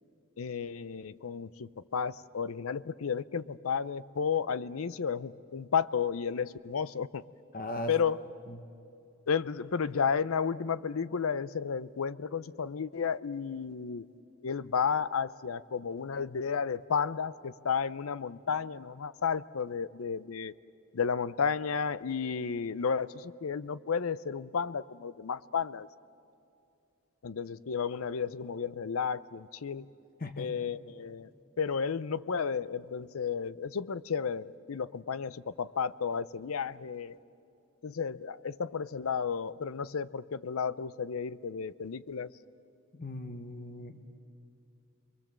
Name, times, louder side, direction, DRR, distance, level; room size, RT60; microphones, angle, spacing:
voice 1, 0.4-7.2 7.9-8.2 9.3-14.1 14.4-20.5 20.9-25.9 27.2-29.9 30.4-31.3 31.6-37.2 37.8-42.3, left 6 dB, 90° left, 17 dB, 0.6 m, -32 dB
voice 2, 7.5-7.9 8.5-8.6 30.2-30.5 42.9-44.0, left 1 dB, 45° left, 8 dB, 1.1 m, -38 dB
29.0 x 22.5 x 7.5 m, 2.6 s
head